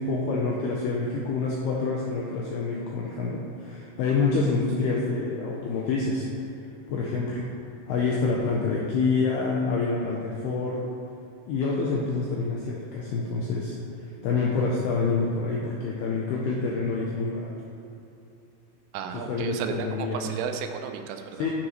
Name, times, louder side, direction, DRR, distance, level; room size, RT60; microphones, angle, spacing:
voice 1, 0.0-6.3 6.9-7.5 7.9-10.8 11.5-13.8 14.0-17.5 19.3-20.3 21.4-21.5, left 4 dB, 90° left, -3 dB, 2.3 m, -27 dB
voice 2, 18.9-21.5, right 7 dB, 85° right, 6 dB, 3.2 m, -33 dB
9.5 x 9.3 x 3.2 m, 2.7 s
omnidirectional pair, 5.6 m